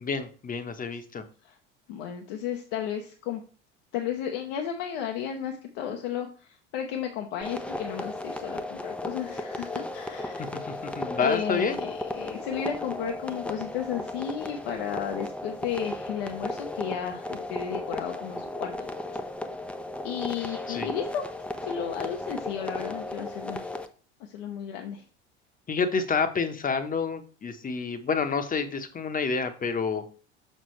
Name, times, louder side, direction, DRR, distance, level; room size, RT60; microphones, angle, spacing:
voice 1, 0.0-1.2 10.4-10.5 10.8-11.8 20.7-20.9 25.7-30.0, left 5 dB, 25° left, 9 dB, 1.1 m, -28 dB
voice 2, 1.9-3.4 3.9-10.5 11.2-19.0 20.0-21.3 21.6-23.8 24.2-25.0, left 8 dB, 60° left, 3 dB, 1.0 m, -33 dB
sound 1, 7.4-23.9, left 2 dB, 5° left, 0.7 m, -35 dB
6.7 x 5.9 x 3.2 m, 0.39 s
hypercardioid pair, 75°, 35 cm